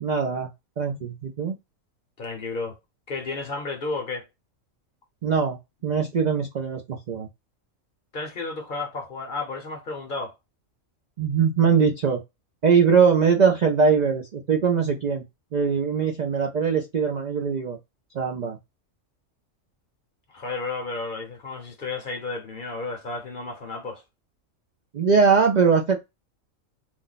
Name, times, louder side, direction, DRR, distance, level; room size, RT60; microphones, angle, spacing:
voice 1, 0.0-0.5 0.8-1.5 5.2-5.6 5.8-7.3 11.2-12.2 12.6-15.2 15.5-17.8 18.1-18.6 24.9-26.0, right 6 dB, 65° right, 0.4 m, -21 dB
voice 2, 2.2-2.8 3.1-4.3 8.1-10.3 20.3-24.0, left 3 dB, 50° left, 0.7 m, -32 dB
2.5 x 2.1 x 3.8 m
omnidirectional pair, 1.4 m